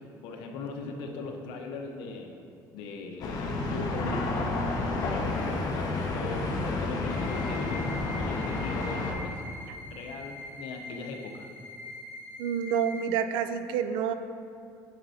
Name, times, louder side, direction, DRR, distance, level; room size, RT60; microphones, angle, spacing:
voice 1, 0.2-2.3 2.7-11.5, left 3 dB, 85° left, 3 dB, 0.9 m, -39 dB
sound 1, 3.2-9.1, left 2 dB, 55° left, 1.2 m, -30 dB
sound 2, 7.1-13.1, left 2 dB, 25° left, 1.6 m, -43 dB
voice 2, 12.4-14.1, right 8 dB, 85° right, 10 dB, 0.4 m, -28 dB
9.5 x 6.6 x 2.8 m, 2.4 s
cardioid pair, 110°, 8 cm